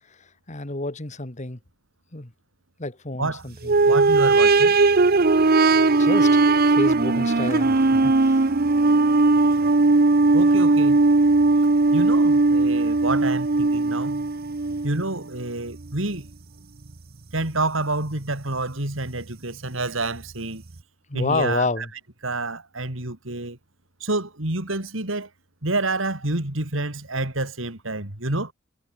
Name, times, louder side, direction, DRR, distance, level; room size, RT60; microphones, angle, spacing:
voice 1, 0.5-1.6 2.1-2.3 2.8-3.7 6.0-8.5 21.1-21.9, left 2 dB, 35° left, 1.9 m, -29 dB
sound 1, 3.6-15.2 15.8-15.9 16.9-17.0, right 3 dB, 45° right, 0.8 m, -18 dB
voice 2, 3.8-4.8 9.6-9.7 10.3-11.0 11.9-14.2 14.8-16.3 17.3-20.6 21.1-21.9 22.2-23.6 24.0-25.3 25.6-28.5, right 2 dB, 70° right, 3.6 m, -28 dB
head